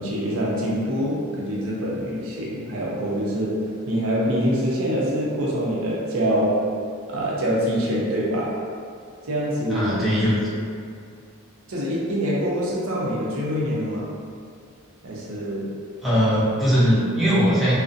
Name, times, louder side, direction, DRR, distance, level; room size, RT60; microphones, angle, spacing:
voice 1, 0.0-3.6 3.9-6.6 7.1-8.5 9.2-10.1 11.7-14.1 15.0-15.7, equal, 80° right, -5 dB, 0.5 m, -25 dB
voice 2, 9.7-10.4 16.0-17.8, equal, ahead, -12 dB, 0.5 m, -20 dB
2.4 x 2.0 x 2.5 m, 2.2 s
head